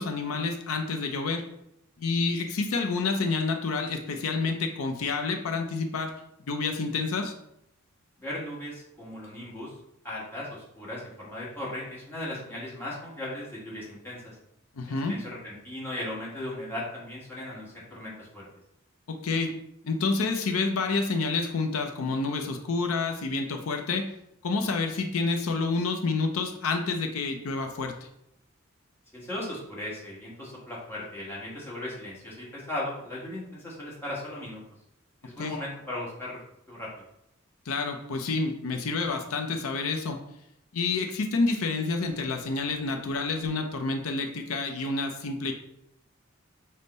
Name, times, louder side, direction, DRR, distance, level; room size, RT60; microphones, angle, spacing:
voice 1, 0.0-1.5 2.0-6.2 6.5-7.3 14.8-15.1 19.1-19.6 19.8-24.1 24.4-28.0 35.4-35.6 37.7-40.2 40.7-45.5, left 3 dB, 85° left, 5 dB, 0.5 m, -28 dB
voice 2, 8.2-9.7 10.0-14.3 15.0-18.4 29.1-34.6 35.2-36.4 36.7-37.0, left 1 dB, 10° left, -7 dB, 1.3 m, -37 dB
5.2 x 2.1 x 4.0 m, 0.79 s
head